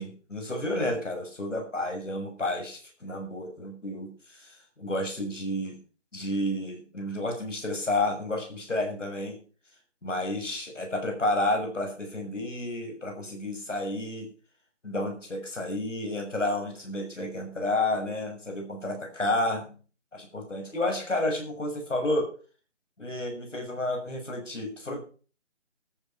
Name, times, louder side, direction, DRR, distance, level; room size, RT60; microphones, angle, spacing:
voice 1, 0.0-5.8 6.1-9.4 10.0-14.3 14.8-19.8 20.1-22.3 23.0-25.0, left 1 dB, 90° left, 4 dB, 6.6 m, -31 dB
13.5 x 9.7 x 5.9 m, 0.39 s
figure-of-eight pair, 175°, 36 cm